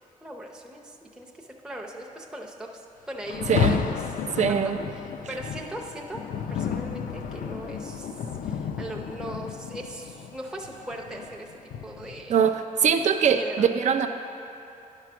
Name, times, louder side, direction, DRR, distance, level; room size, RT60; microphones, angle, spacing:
voice 1, 0.2-2.7 3.1-4.0 4.4-4.6 5.3-6.2 6.5-8.1 8.4-11.5 11.8-12.3 13.3-13.7, right 1 dB, 5° right, -1 dB, 0.6 m, -39 dB
Rain, 3.3-12.3, left 7 dB, 80° left, 0.4 m, -32 dB
voice 2, 3.5-3.8 4.3-4.8 12.3-14.1, right 7 dB, 60° right, 8 dB, 0.5 m, -22 dB
10.5 x 4.7 x 5.9 m, 2.9 s
cardioid pair, 115°, 14 cm